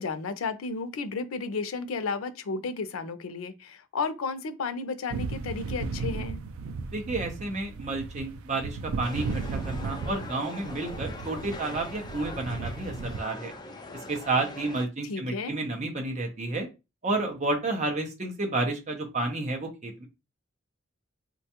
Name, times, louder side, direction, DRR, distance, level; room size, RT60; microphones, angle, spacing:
voice 1, 0.0-6.4 15.0-15.6, left 4 dB, 90° left, 0.5 m, -33 dB
sound 1, 5.1-13.2, right 4 dB, 90° right, 0.3 m, -35 dB
voice 2, 6.9-13.5 14.1-16.7 17.0-20.1, right 2 dB, 35° right, 0.6 m, -31 dB
sound 2, 9.0-14.9, left 2 dB, 20° left, 0.4 m, -42 dB
3.7 x 2.2 x 2.8 m
head